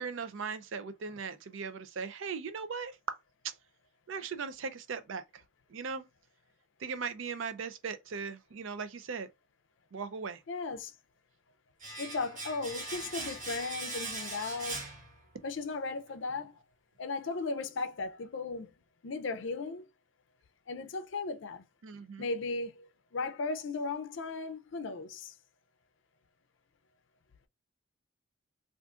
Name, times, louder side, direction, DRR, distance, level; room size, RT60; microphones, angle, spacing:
voice 1, 0.0-3.2 3.4-3.5 4.1-5.4 5.7-6.1 6.8-9.3 9.9-10.4 21.8-22.3, right 5 dB, 70° right, 0.4 m, -38 dB
voice 2, 10.5-10.9 12.0-14.8 15.4-16.6 17.0-18.7 19.0-19.9 20.7-21.6 22.2-25.3, left 3 dB, 65° left, 0.5 m, -36 dB
Domestic sounds home sounds, 11.8-15.6 15.9-16.0, right 2 dB, 40° right, 0.9 m, -41 dB
3.6 x 2.5 x 2.4 m
head